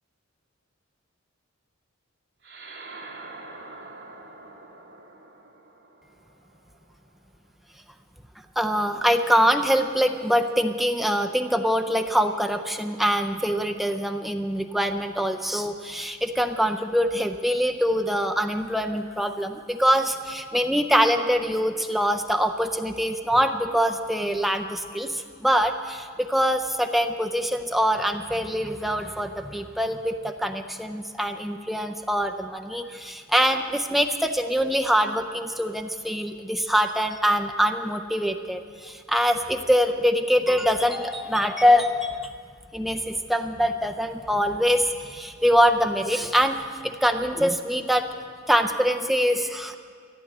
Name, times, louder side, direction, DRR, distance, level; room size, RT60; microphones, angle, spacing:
sound 1, 2.4-7.2, right 3 dB, 50° right, 2.9 m, -45 dB
voice 1, 8.6-42.3 42.7-46.6 46.8-48.1 48.5-49.8, equal, ahead, 5 dB, 0.4 m, -24 dB
14.5 x 9.4 x 9.1 m, 2.1 s
head